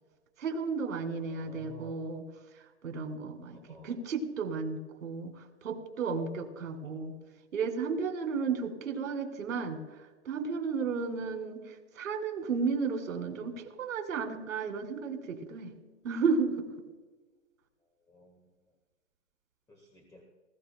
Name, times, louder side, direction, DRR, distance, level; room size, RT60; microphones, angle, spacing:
voice 1, 0.4-2.2 2.8-7.1 7.5-15.7 16.0-16.7, right 5 dB, 80° right, 3 dB, 2.8 m, -33 dB
voice 2, 1.0-2.0 3.5-3.9 6.6-7.1 11.2-11.3 18.1-18.5 19.7-20.2, right 1 dB, 10° left, 0 dB, 1.4 m, -55 dB
20.0 x 14.5 x 2.2 m, 1.3 s
hypercardioid pair, 155°, 40 cm